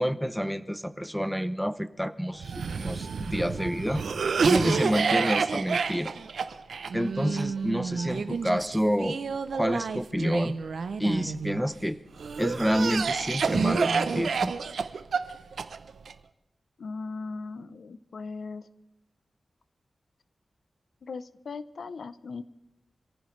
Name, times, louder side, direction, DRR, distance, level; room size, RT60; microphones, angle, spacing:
voice 1, 0.0-4.0 4.4-6.1 6.9-9.2 9.5-10.5 11.0-12.0 12.4-14.5, equal, ahead, 13 dB, 0.6 m, -28 dB
Cough, 2.4-11.6 12.2-16.1, right 5 dB, 90° right, 0.6 m, -29 dB
voice 2, 16.8-18.6 21.0-22.4, left 4 dB, 80° left, 13 dB, 0.7 m, -38 dB
26.5 x 15.0 x 3.2 m, 0.91 s
wide cardioid pair, 130°, 0 cm